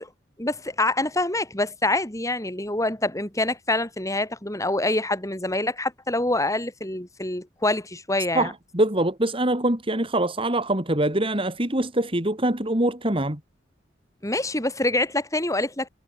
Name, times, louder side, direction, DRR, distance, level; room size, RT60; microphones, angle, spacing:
voice 1, 0.4-8.5 14.2-15.9, left 2 dB, 15° left, 5.5 m, -26 dB
voice 2, 8.3-13.4, right 1 dB, 30° right, 3.4 m, -24 dB
head